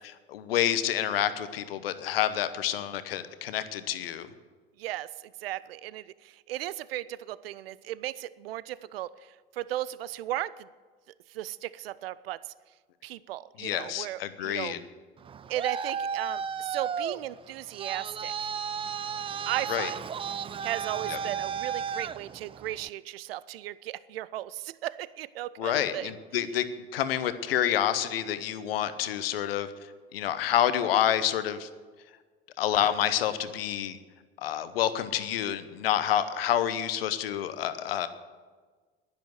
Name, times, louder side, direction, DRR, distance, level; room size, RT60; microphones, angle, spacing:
voice 1, 0.3-4.3 13.6-14.8 19.7-19.9 21.1-21.2 25.6-26.7 26.9-29.7 30.1-31.7 32.6-34.0 34.4-38.1, left 11 dB, 75° left, 12 dB, 0.9 m, -28 dB
voice 2, 4.8-10.7 11.3-12.5 13.0-14.8 15.5-18.5 19.5-20.0 20.6-26.1, right 14 dB, 75° right, 19 dB, 0.5 m, -36 dB
Traffic noise roadway noise, 15.2-22.9, right 7 dB, 20° right, 0.4 m, -34 dB
10.5 x 10.5 x 8.0 m, 1.5 s
figure-of-eight pair, 65°, 29 cm